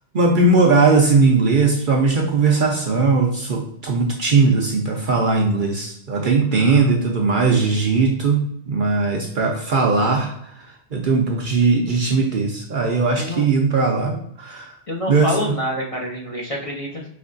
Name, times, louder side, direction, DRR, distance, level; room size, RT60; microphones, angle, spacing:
voice 1, 0.1-10.7 10.9-14.7 15.1-15.5, right 3 dB, 50° right, 0 dB, 0.7 m, -19 dB
voice 2, 13.2-13.5 14.9-17.1, equal, 35° left, -2 dB, 0.7 m, -27 dB
5.2 x 3.2 x 2.5 m, 0.71 s
omnidirectional pair, 1.2 m